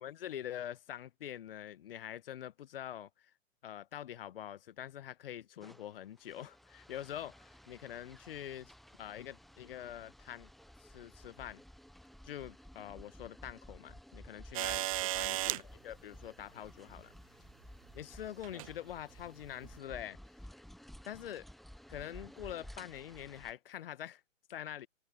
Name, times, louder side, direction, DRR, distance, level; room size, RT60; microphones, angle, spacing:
voice 1, 0.0-3.3 3.6-8.7 9.0-10.5 10.8-11.6 12.2-17.1 17.9-20.2 21.0-21.5 21.9-24.2 24.5-24.9, left 11 dB, 45° left, 1.4 m, -45 dB
sound 1, 5.6-23.5, equal, ahead, 1.0 m, -55 dB
sound 2, 14.5-15.6 17.0-17.1 18.4-18.7 19.6-19.7, right 17 dB, 25° right, 0.8 m, -34 dB
open air
figure-of-eight pair, 125°, 38 cm